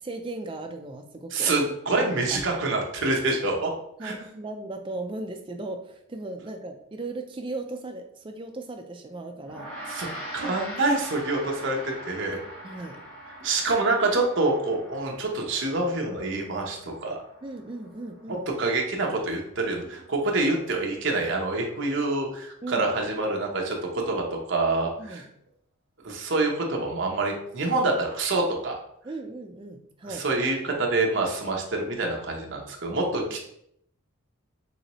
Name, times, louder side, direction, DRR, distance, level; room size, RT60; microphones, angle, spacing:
voice 1, 0.0-1.6 1.9-2.1 4.0-9.7 12.6-13.0 17.4-18.5 22.6-22.9 25.0-25.3 29.0-30.2, right 2 dB, 25° right, 4 dB, 0.4 m, -37 dB
voice 2, 1.3-3.7 4.0-4.2 9.9-12.4 13.4-17.2 18.6-25.2 26.0-28.7 30.0-33.4, right 2 dB, 55° right, 1 dB, 0.7 m, -26 dB
Gong, 9.4-19.0, equal, 10° left, 1.5 m, -42 dB
4.1 x 3.0 x 3.0 m, 0.74 s
head